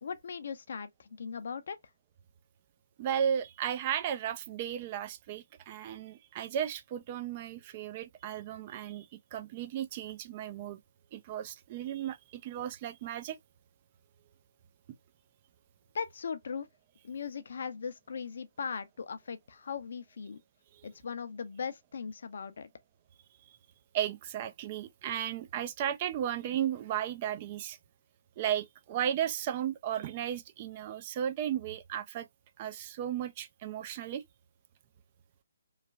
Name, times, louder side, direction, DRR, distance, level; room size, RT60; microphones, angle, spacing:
voice 1, 0.0-1.8 15.9-16.7 17.0-20.4 20.8-22.7, left 6 dB, 60° left, 0.5 m, -39 dB
voice 2, 3.0-10.8 11.1-13.4 23.9-27.8 28.4-32.3 32.6-34.3, right 10 dB, 30° right, 0.4 m, -35 dB
3.1 x 2.2 x 2.4 m
figure-of-eight pair, 145°, 0 cm